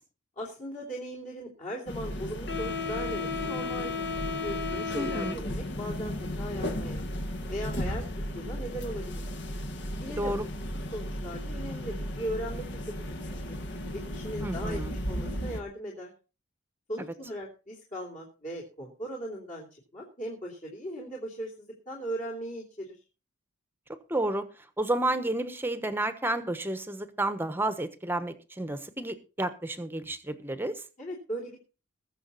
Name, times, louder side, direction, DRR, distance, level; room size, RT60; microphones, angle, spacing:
voice 1, 0.4-3.9 4.3-7.1 7.5-9.1 10.0-10.5 10.9-12.8 13.3-13.6 13.9-14.8 15.1-16.1 16.9-19.7 19.9-23.0 31.0-31.6, equal, 35° left, 3.0 m, -38 dB
sound 1, 1.9-15.6, left 1 dB, 55° left, 1.8 m, -34 dB
voice 2, 4.9-5.4 10.1-10.4 14.4-15.0 24.1-24.5 24.8-30.8, right 1 dB, 10° right, 1.1 m, -31 dB
21.0 x 7.0 x 4.1 m
head